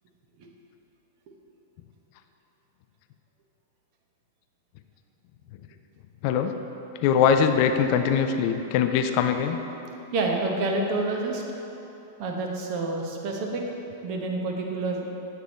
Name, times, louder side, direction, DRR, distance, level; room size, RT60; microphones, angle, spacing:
voice 1, 7.0-9.6, left 7 dB, 50° left, 7 dB, 0.3 m, -22 dB
voice 2, 10.1-11.4 12.2-13.6 14.0-15.1, right 2 dB, 50° right, 1 dB, 0.9 m, -28 dB
8.1 x 3.4 x 4.3 m, 3.0 s
hypercardioid pair, 100°, 0 cm